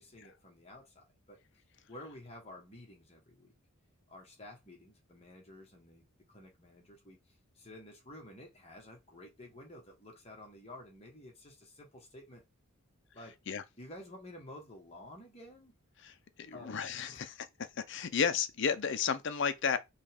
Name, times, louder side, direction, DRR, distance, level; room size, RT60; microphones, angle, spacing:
voice 1, 0.0-1.4 1.9-3.5 4.1-12.4 13.1-13.4 13.8-15.7 16.5-16.7 17.1-17.3, left 1 dB, 30° left, 1.3 m, -52 dB
voice 2, 16.0-17.4 17.8-19.8, left 6 dB, 55° left, 0.5 m, -33 dB
5.4 x 2.3 x 3.4 m
head